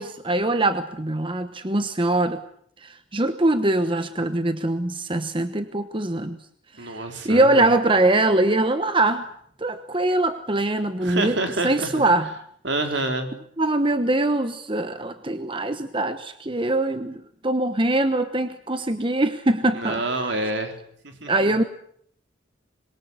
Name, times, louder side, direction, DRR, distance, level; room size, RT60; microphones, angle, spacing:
voice 1, 0.0-2.4 2.8-6.4 6.8-9.3 9.6-11.3 11.6-12.3 13.6-20.3 21.3-21.6, right 2 dB, 25° right, 10 dB, 1.1 m, -23 dB
voice 2, 6.8-7.7 11.0-12.0 12.6-13.3 19.7-20.7 21.0-21.5, right 2 dB, 65° right, 5 dB, 4.0 m, -27 dB
26.5 x 22.5 x 8.0 m, 0.66 s
head